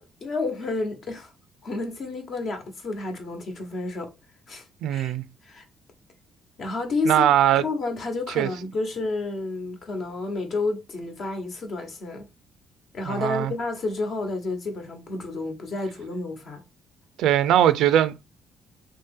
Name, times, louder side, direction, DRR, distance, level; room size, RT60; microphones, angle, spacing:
voice 1, 0.0-1.3 1.6-4.1 4.5-5.2 5.4-5.6 6.6-7.3 7.6-12.3 12.9-16.6, left 3 dB, 55° left, 1.2 m, -30 dB
voice 2, 4.8-5.2 7.1-7.6 8.4-8.5 13.1-13.5 17.2-18.2, right 11 dB, 85° right, 0.3 m, -20 dB
3.2 x 2.8 x 3.6 m
cardioid pair, 95°, 0 cm